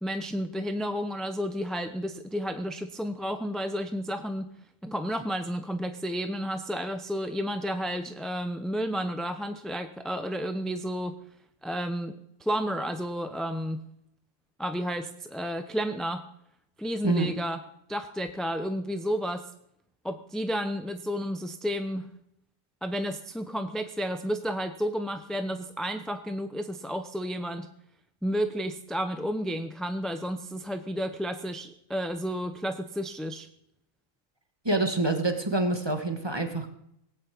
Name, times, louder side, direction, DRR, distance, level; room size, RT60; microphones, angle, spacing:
voice 1, 0.0-4.5 4.8-11.2 11.6-12.1 12.4-13.8 14.6-16.2 16.8-17.6 17.9-19.4 20.0-22.1 22.8-27.7 28.2-33.5, equal, ahead, 8 dB, 0.5 m, -31 dB
voice 2, 34.7-36.7, right 2 dB, 20° right, 5 dB, 1.8 m, -26 dB
18.5 x 8.5 x 8.6 m, 0.76 s
omnidirectional pair, 1.4 m